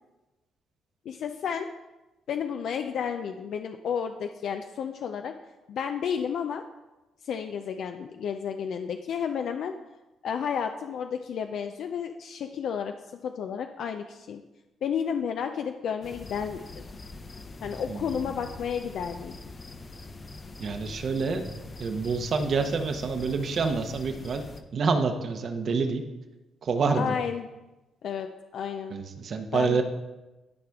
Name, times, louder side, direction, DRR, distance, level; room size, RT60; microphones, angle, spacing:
voice 1, 1.1-1.7 2.3-5.3 5.7-6.6 7.2-9.7 10.2-12.9 13.2-14.4 14.8-16.7 17.6-19.4 26.9-27.5 28.0-29.0 29.5-29.8, left 7 dB, 70° left, 6 dB, 0.4 m, -32 dB
sound 1, 16.0-24.6, left 2 dB, 35° left, 0.8 m, -43 dB
voice 2, 17.9-18.4 20.6-21.5 21.8-24.4 24.7-26.0 26.6-27.2 28.9-29.8, right 4 dB, 55° right, 6 dB, 0.9 m, -27 dB
12.0 x 5.0 x 3.5 m, 1.1 s
cardioid pair, 90°, 0 cm